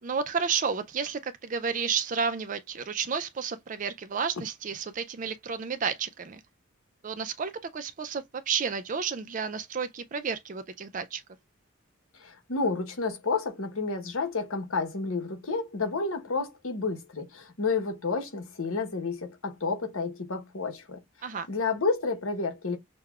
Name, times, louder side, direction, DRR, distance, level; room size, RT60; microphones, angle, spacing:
voice 1, 0.0-6.4 7.0-11.2 21.2-21.5, right 6 dB, 35° right, 0.4 m, -31 dB
voice 2, 12.1-21.0 21.5-22.8, left 4 dB, 70° left, 1.0 m, -30 dB
6.4 x 2.2 x 2.3 m
head